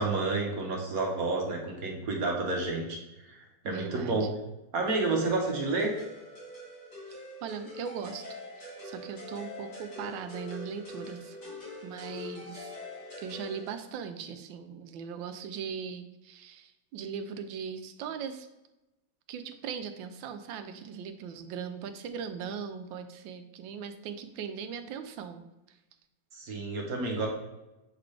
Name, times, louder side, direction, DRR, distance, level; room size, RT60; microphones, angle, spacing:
voice 1, 0.0-3.0 3.3-4.2 4.7-6.0 26.3-27.3, right 3 dB, 55° right, 0 dB, 1.4 m, -30 dB
voice 2, 3.6-4.3 7.4-8.3 8.6-11.4 11.8-12.8 13.2-18.5 19.3-25.4 25.7-25.8, right 7 dB, 90° right, 8 dB, 1.3 m, -39 dB
sound 1, 4.9-13.7, left 2 dB, 65° left, 2.5 m, -44 dB
7.2 x 3.9 x 3.3 m, 0.98 s
omnidirectional pair, 2.0 m